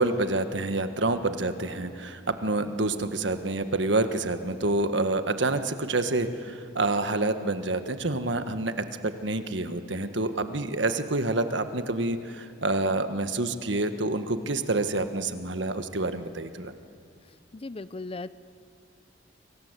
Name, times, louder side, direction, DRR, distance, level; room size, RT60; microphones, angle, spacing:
voice 1, 0.0-16.7, right 2 dB, 65° right, 9 dB, 1.5 m, -28 dB
voice 2, 17.6-18.3, left 2 dB, 30° left, 15 dB, 0.6 m, -36 dB
29.0 x 24.0 x 8.2 m, 2.4 s
head